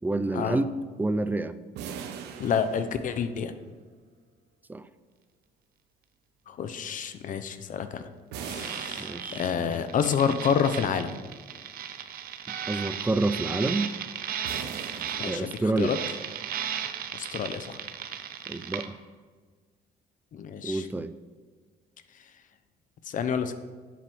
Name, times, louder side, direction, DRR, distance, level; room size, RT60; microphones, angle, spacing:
voice 1, 0.0-0.7 1.0-1.5 4.7-4.9 9.0-9.4 12.7-13.9 15.2-15.9 18.5-19.0 20.6-21.1, right 2 dB, 10° right, 13 dB, 0.4 m, -28 dB
sound 1, 1.8-3.6 8.3-10.0 14.4-16.1, right 7 dB, 85° right, 1.0 m, -41 dB
voice 2, 2.4-3.5 6.5-8.1 8.4-11.2 15.2-16.0 17.1-17.8 20.3-20.9 23.1-23.5, left 7 dB, 50° left, 10 dB, 0.8 m, -29 dB
sound 2, 8.5-18.9, right 9 dB, 60° right, 0.8 m, -36 dB
8.0 x 7.4 x 6.2 m, 1.4 s
cardioid pair, 110°, 17 cm